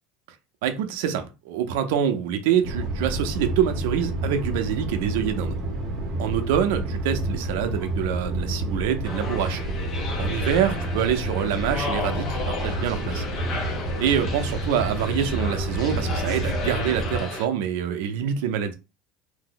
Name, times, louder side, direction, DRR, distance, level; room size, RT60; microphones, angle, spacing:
voice 1, 0.6-5.6 6.2-9.6 10.2-13.3 14.0-18.8, right 9 dB, 75° right, 0.5 m, -25 dB
sound 1, 2.6-17.2, right 1 dB, 25° right, 0.8 m, -29 dB
sound 2, 9.0-17.5, left 4 dB, 30° left, 0.4 m, -34 dB
2.7 x 2.0 x 3.8 m
cardioid pair, 175°, 0 cm